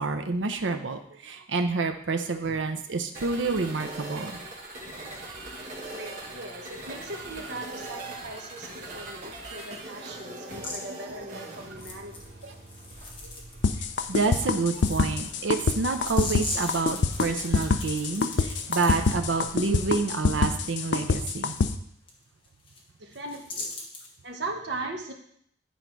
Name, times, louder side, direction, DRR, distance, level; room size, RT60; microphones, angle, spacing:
voice 1, 0.0-4.4 12.4-12.5 13.2-13.3 14.1-21.5, right 3 dB, 85° right, 6 dB, 0.7 m, -28 dB
sound 1, 3.1-20.1, right 2 dB, 40° right, 1.3 m, -42 dB
voice 2, 5.7-12.4 23.0-23.8 24.2-25.1, right 2 dB, 65° right, 2 dB, 1.2 m, -39 dB
sound 2, 10.5-10.8 11.8-13.6 13.9-19.1 21.5-21.6 22.1-22.2 22.4-22.8 23.1-24.1, left 3 dB, 25° left, 1.2 m, -39 dB
sound 3, 13.6-21.7, left 4 dB, 75° left, 0.5 m, -25 dB
9.6 x 4.0 x 4.7 m, 0.67 s
head